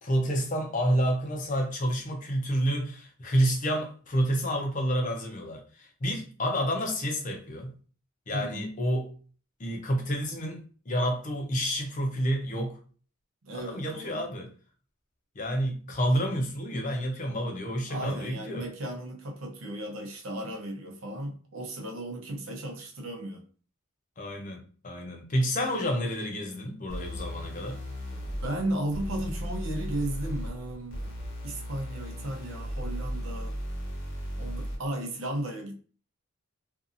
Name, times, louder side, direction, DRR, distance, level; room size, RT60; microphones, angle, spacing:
voice 1, 0.0-7.7 8.3-9.1 9.6-12.8 13.5-14.5 15.4-18.6 24.2-27.8, equal, 35° left, 0.6 m, -29 dB
voice 2, 8.3-8.6 13.4-14.3 17.9-23.4 28.4-31.1 31.4-33.5 34.4-35.8, right 1 dB, 75° right, 0.7 m, -35 dB
sound 1, 26.9-34.9, equal, 60° left, 1.0 m, -36 dB
2.7 x 2.5 x 2.4 m
head